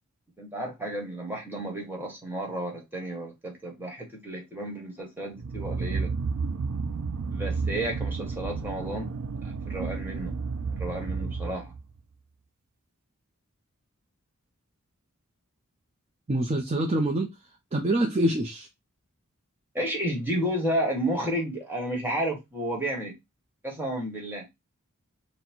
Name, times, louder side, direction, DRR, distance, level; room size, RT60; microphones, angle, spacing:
voice 1, 0.4-6.1 7.3-9.2 9.4-10.3 10.8-11.7 19.7-23.1 23.6-24.4, right 1 dB, 10° right, 1.3 m, -32 dB
sound 1, 5.4-11.9, right 4 dB, 85° right, 0.4 m, -32 dB
voice 2, 16.3-17.3 17.7-18.7, right 1 dB, 30° right, 0.5 m, -25 dB
3.9 x 2.1 x 4.4 m
head